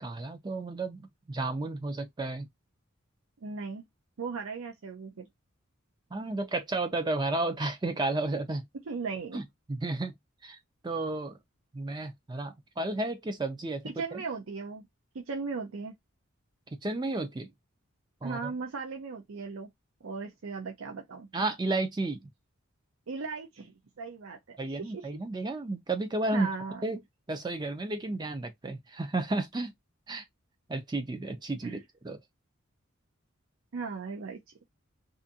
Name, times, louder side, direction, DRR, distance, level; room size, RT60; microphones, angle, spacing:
voice 1, 0.0-2.5 6.1-8.6 9.3-9.4 9.7-10.1 10.4-10.6 10.8-11.4 11.7-13.8 14.1-14.2 16.8-17.5 18.2-18.5 21.3-22.2 24.6-26.5 26.8-27.0 27.3-29.7 30.1-30.2 30.7-31.8 32.0-32.2, right 2 dB, 20° right, 0.3 m, -32 dB
voice 2, 3.4-3.8 4.2-5.3 8.9-9.4 13.8-14.9 15.1-16.0 18.2-19.7 20.0-21.3 23.1-25.1 26.3-26.8 31.6-31.8 33.7-34.4, right 4 dB, 75° right, 0.5 m, -37 dB
2.5 x 2.5 x 2.7 m
head